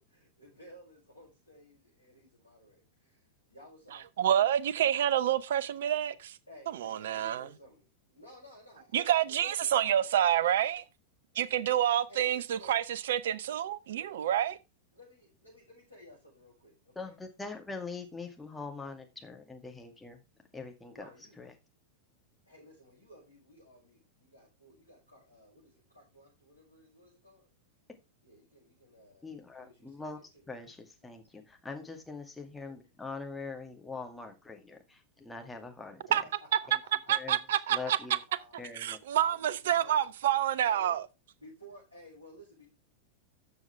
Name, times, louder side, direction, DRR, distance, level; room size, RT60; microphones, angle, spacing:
voice 1, 0.0-4.0 6.5-10.4 12.1-12.7 14.9-17.2 20.9-21.4 22.4-27.5 28.2-29.3 29.6-30.5 31.0-31.1 36.2-37.4 37.8-38.6 39.1-40.1 40.6-41.0 41.4-42.7, equal, 85° left, 6.7 m, -56 dB
voice 2, 4.2-6.4 6.7-7.5 8.9-10.8 11.4-14.6 36.1-36.2 37.1-38.0 38.8-41.0, right 10 dB, 60° right, 0.8 m, -28 dB
voice 3, 17.0-20.2 20.5-21.1 21.4-21.5 29.2-30.2 30.5-36.2 37.1-37.4 37.7-38.2 38.6-39.0, left 4 dB, 10° left, 2.2 m, -43 dB
13.0 x 7.1 x 3.4 m
figure-of-eight pair, 90°, 0 cm